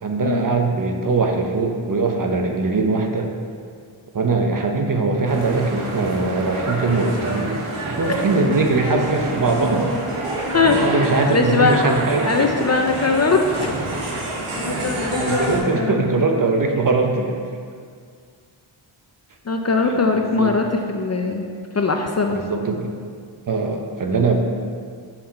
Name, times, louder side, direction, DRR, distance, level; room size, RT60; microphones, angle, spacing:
voice 1, 0.0-3.3 4.1-7.5 7.9-9.9 10.4-12.7 14.6-17.4 19.9-20.6 22.3-22.9 23.5-24.4, right 3 dB, 40° right, 3 dB, 0.7 m, -21 dB
sound 1, 5.2-15.6, right 2 dB, 90° right, 1.3 m, -28 dB
voice 2, 10.5-11.9 12.3-13.7 14.5-16.3 19.5-21.4 21.7-22.4, left 4 dB, 35° left, 3 dB, 0.4 m, -21 dB
6.9 x 5.8 x 4.3 m, 2.1 s
wide cardioid pair, 125°, 49 cm